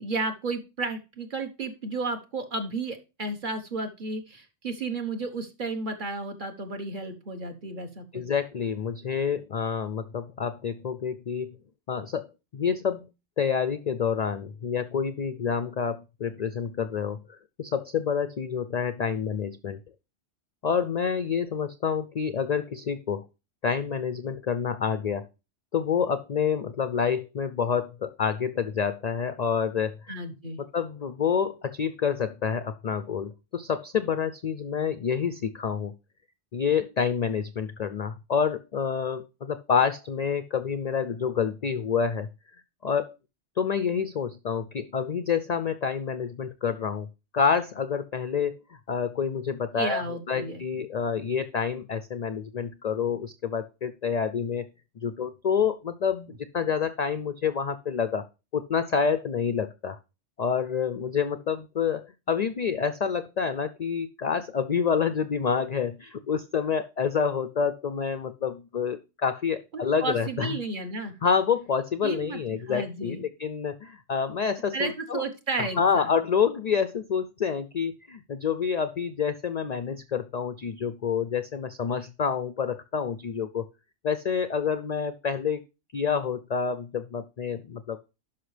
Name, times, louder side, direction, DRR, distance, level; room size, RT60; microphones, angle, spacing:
voice 1, 0.0-8.2 30.1-30.6 49.8-50.6 69.7-71.1 72.0-72.4 72.7-73.2 74.7-76.1, right 3 dB, 45° right, 5 dB, 1.3 m, -33 dB
voice 2, 8.1-11.5 11.9-12.2 12.5-13.1 13.4-19.8 20.6-23.3 23.6-25.3 25.7-30.1 30.6-35.9 36.5-42.3 42.8-43.1 43.6-47.1 47.3-54.7 55.0-58.2 58.5-60.0 60.4-70.5 71.2-75.2 75.6-83.6 84.0-85.6 85.9-88.0, left 6 dB, 60° left, 12 dB, 0.4 m, -28 dB
11.5 x 5.6 x 3.2 m, 0.28 s
omnidirectional pair, 1.2 m